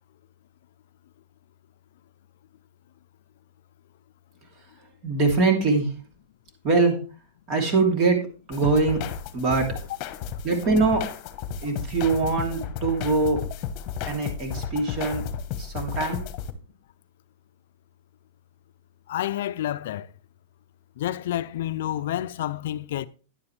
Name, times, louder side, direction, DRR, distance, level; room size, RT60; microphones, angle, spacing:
voice 1, 5.0-5.9 6.6-7.0 7.5-9.0 9.3-9.7 10.4-11.0 11.6-13.4 14.0-15.2 15.6-16.3, right 3 dB, 35° right, 3.2 m, -23 dB
sound 1, 8.5-16.5, left 8 dB, 40° left, 1.1 m, -33 dB
voice 2, 19.1-20.1 21.0-23.1, left 12 dB, 65° left, 0.5 m, -29 dB
10.5 x 9.6 x 3.3 m
supercardioid pair, 145°, 0 cm